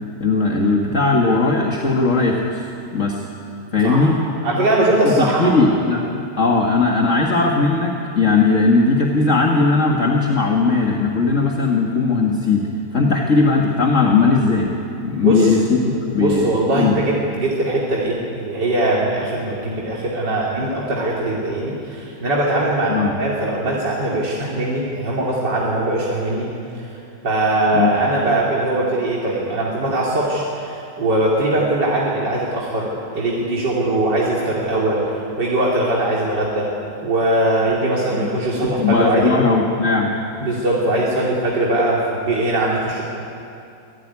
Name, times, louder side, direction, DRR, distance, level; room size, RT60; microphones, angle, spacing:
voice 1, 0.2-2.6 2.9-3.3 3.7-4.2 5.0-6.0 6.4-12.7 12.9-14.7 15.0-17.0 22.9-23.2 27.7-27.9 38.1-38.3 38.8-40.1, left 3 dB, 45° left, 0 dB, 2.1 m, -18 dB
voice 2, 4.4-5.5 15.2-15.5 15.9-26.5 26.8-26.9 27.2-32.9 33.1-36.7 37.0-39.3 40.4-43.0, right 1 dB, 75° right, -5 dB, 3.6 m, -21 dB
26.0 x 17.0 x 9.7 m, 2.7 s
omnidirectional pair, 1.9 m